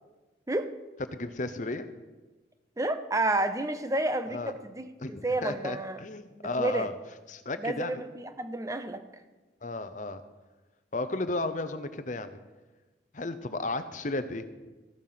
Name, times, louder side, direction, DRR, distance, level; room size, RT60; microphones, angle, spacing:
voice 1, 1.1-1.9 4.3-4.5 5.0-6.9 7.3-8.0 9.6-10.2 10.9-12.4 13.1-14.4, left 2 dB, 40° left, 11 dB, 0.8 m, -33 dB
voice 2, 2.8-6.0 6.6-6.9 7.6-9.0, right 2 dB, 15° right, 10 dB, 0.7 m, -30 dB
14.0 x 8.9 x 5.8 m, 1.2 s
head